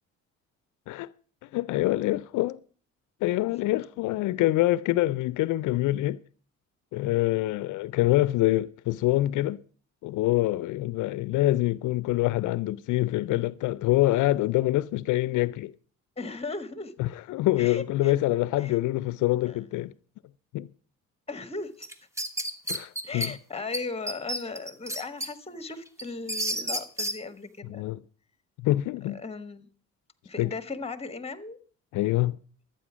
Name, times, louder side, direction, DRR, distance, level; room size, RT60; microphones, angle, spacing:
voice 1, 1.4-2.6 3.2-6.2 6.9-9.6 10.0-15.7 17.0-19.9 20.5-20.7 22.7-23.3 27.6-28.0 28.6-29.2 30.4-30.5 31.9-32.4, left 16 dB, 80° left, 0.4 m, -25 dB
voice 2, 16.2-16.9 17.6-18.8 19.4-19.6 21.3-21.9 23.0-27.8 29.1-29.7 30.2-31.6, left 3 dB, 20° left, 1.4 m, -37 dB
sound 1, 21.8-23.3 23.7-23.8 24.1-25.3 25.7-27.2, right 1 dB, 10° right, 1.3 m, -31 dB
12.0 x 8.9 x 6.1 m
cardioid pair, 90°, 30 cm